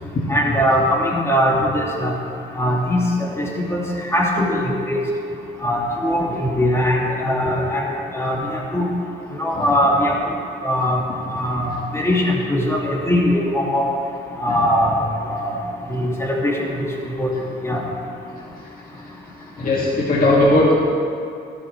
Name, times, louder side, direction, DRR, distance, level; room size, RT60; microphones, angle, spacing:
voice 1, 0.3-2.1 2.5-5.0 5.6-7.9 8.1-8.9 9.4-10.1 10.6-11.0 11.3-13.8 14.4-15.6 15.9-17.3 17.6-17.8, equal, 15° left, -3 dB, 2.9 m, -21 dB
voice 2, 19.6-20.7, left 2 dB, 45° left, -6 dB, 2.5 m, -17 dB
14.0 x 13.5 x 3.5 m, 2.6 s
cardioid pair, 90°, 20 cm